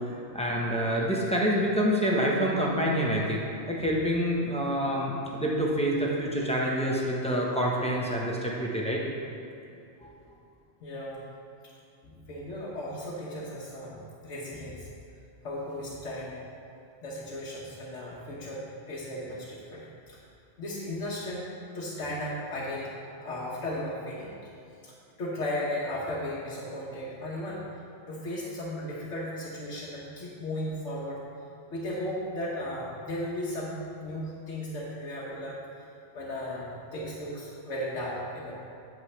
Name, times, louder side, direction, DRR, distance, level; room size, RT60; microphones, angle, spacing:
voice 1, 0.0-3.4 3.7-9.0 10.0-10.1, equal, 5° left, -4 dB, 1.0 m, -27 dB
voice 2, 10.8-11.2 12.0-14.9 15.4-16.4 17.0-20.2 20.6-21.5 21.7-22.9 23.2-24.5 24.8-27.6 28.1-31.2 31.7-35.9 36.1-38.5, left 1 dB, 90° left, -6 dB, 1.4 m, -36 dB
8.2 x 7.8 x 3.3 m, 2.5 s
omnidirectional pair, 1.2 m